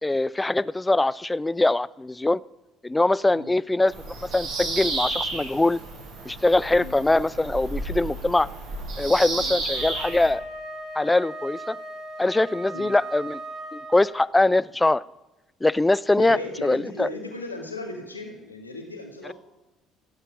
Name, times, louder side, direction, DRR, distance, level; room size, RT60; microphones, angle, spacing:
voice 1, 0.0-2.4 2.8-3.9 4.2-5.8 6.3-8.5 9.0-10.4 11.0-11.8 12.2-13.4 13.7-15.0 15.6-17.1, left 2 dB, 15° left, 21 dB, 0.4 m, -22 dB
Bird vocalization bird call bird song, 3.9-10.3, right 2 dB, 60° right, 6.4 m, -32 dB
Wind instrument woodwind instrument, 9.7-14.3, right 1 dB, 40° right, 4.8 m, -38 dB
voice 2, 16.2-19.3, left 2 dB, 90° left, 3 dB, 1.7 m, -36 dB
16.0 x 8.8 x 6.0 m, 1.0 s
figure-of-eight pair, 50°, 0 cm